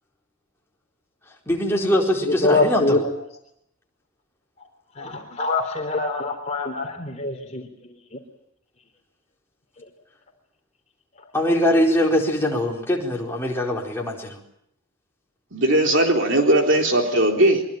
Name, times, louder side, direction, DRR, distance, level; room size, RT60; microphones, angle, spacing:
voice 1, 1.5-3.0 11.3-14.4, left 1 dB, 10° left, -2 dB, 4.4 m, -22 dB
voice 2, 2.4-3.0 5.0-7.6, left 2 dB, 30° left, 3 dB, 3.6 m, -24 dB
voice 3, 15.5-17.6, right 1 dB, 55° right, 2 dB, 3.9 m, -18 dB
24.0 x 23.0 x 9.0 m, 0.73 s
head